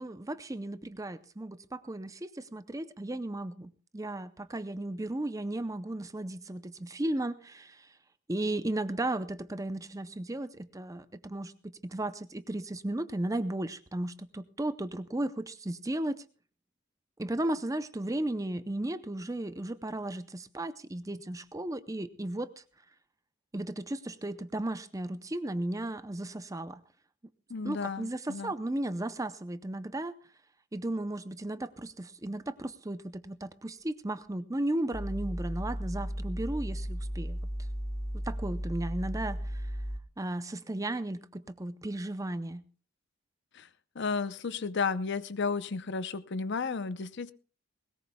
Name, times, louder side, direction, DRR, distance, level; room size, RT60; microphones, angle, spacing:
voice 1, 0.0-7.9 8.3-16.2 17.2-22.6 23.5-26.8 27.6-30.1 30.7-37.4 38.2-39.7 40.2-42.6, right 1 dB, 15° right, 12 dB, 0.5 m, -35 dB
voice 2, 27.5-28.5 43.5-43.7 43.9-47.3, left 4 dB, 50° left, 14 dB, 0.6 m, -33 dB
sound 1, 34.9-40.0, equal, 15° left, 1.7 m, -35 dB
20.5 x 18.5 x 2.3 m, 0.37 s
head